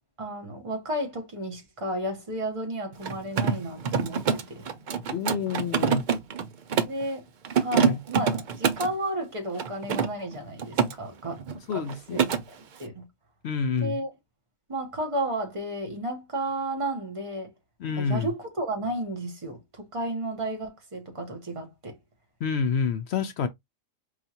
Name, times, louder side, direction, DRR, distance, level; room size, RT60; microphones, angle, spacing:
voice 1, 0.2-4.7 6.8-7.2 7.6-11.4 11.7-12.3 12.8-13.1 13.8-14.1 14.7-17.5 18.0-22.0, right 1 dB, 25° right, 0.9 m, -32 dB
Mechanisms, 2.9-7.0 7.4-8.9 9.6-10.9 11.2-11.6 11.9-12.4, right 6 dB, 60° right, 0.5 m, -26 dB
voice 2, 5.1-6.0 7.8-8.0 11.7-12.2 13.4-14.0 17.8-18.3 22.4-23.5, left 6 dB, 65° left, 0.7 m, -28 dB
4.7 x 2.4 x 2.8 m
omnidirectional pair, 1.4 m